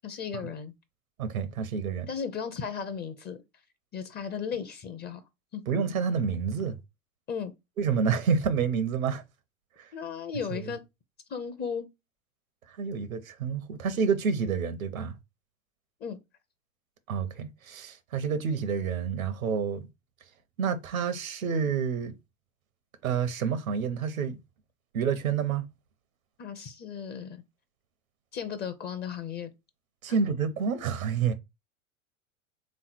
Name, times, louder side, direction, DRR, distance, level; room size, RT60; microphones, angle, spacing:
voice 1, 0.0-0.7 2.1-3.4 3.9-5.2 5.5-5.6 7.3-7.5 9.9-10.8 11.3-11.9 16.0-16.2 26.4-27.4 28.3-29.5, left 7 dB, 25° left, 0.6 m, -35 dB
voice 2, 1.2-2.1 5.7-6.8 7.8-9.2 10.5-10.7 12.8-15.1 17.1-19.9 20.6-22.1 23.0-24.4 24.9-25.6 30.0-31.3, right 6 dB, 80° right, 0.9 m, -28 dB
3.6 x 3.2 x 4.3 m
hypercardioid pair, 95°, 41 cm